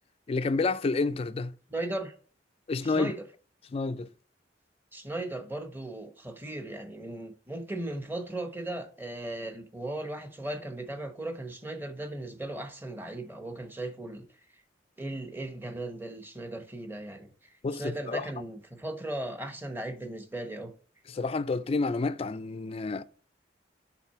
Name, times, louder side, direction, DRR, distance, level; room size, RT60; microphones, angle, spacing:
voice 1, 0.3-1.5 2.7-3.1 3.7-4.1 17.6-18.3 21.1-23.0, left 3 dB, 30° left, 0.3 m, -29 dB
voice 2, 1.7-2.1 2.8-3.2 4.9-14.3 15.0-20.7, right 1 dB, 10° right, 0.9 m, -37 dB
5.8 x 3.7 x 5.6 m
head